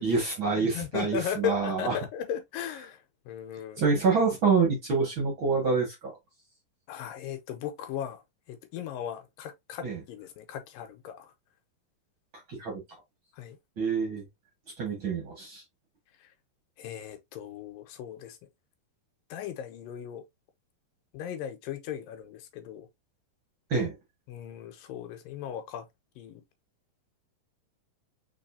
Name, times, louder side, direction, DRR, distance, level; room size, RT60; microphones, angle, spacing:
voice 1, 0.0-1.9 3.8-6.1 9.8-10.0 12.5-12.8 13.8-14.2 14.8-15.6 23.7-23.9, right 4 dB, 45° right, 1.8 m, -26 dB
voice 2, 0.6-3.0 3.3-3.8 6.9-8.2 8.5-11.3 13.4-13.6 16.8-18.4 19.3-20.2 21.1-22.9 24.3-25.9 26.2-26.4, left 9 dB, 80° left, 2.5 m, -37 dB
4.7 x 4.2 x 2.7 m
omnidirectional pair, 4.0 m